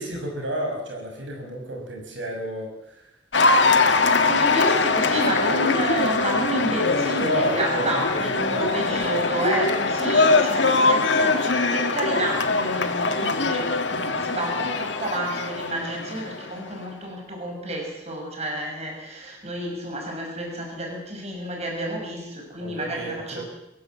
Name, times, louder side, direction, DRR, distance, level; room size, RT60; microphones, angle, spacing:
voice 1, 0.0-3.0 6.6-9.2 22.6-23.4, right 1 dB, 85° right, 2 dB, 6.1 m, -31 dB
Cheering / Applause, 3.3-16.7, left 3 dB, 75° left, 1.8 m, -22 dB
voice 2, 3.4-23.4, right 1 dB, 35° right, 1 dB, 6.1 m, -30 dB
23.0 x 16.0 x 7.7 m, 0.89 s
head